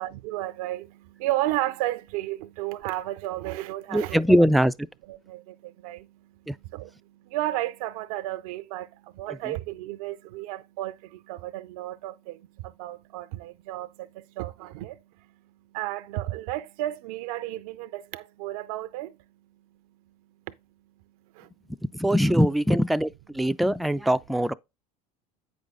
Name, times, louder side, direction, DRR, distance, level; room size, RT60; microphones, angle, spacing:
voice 1, 0.0-4.2 5.1-15.3 15.7-19.2 21.3-21.5, right 15 dB, 70° right, 0.5 m, -33 dB
voice 2, 3.9-4.7 6.5-6.6 22.0-24.5, equal, ahead, 0.3 m, -22 dB
8.4 x 5.4 x 3.7 m
hypercardioid pair, 80°, 19 cm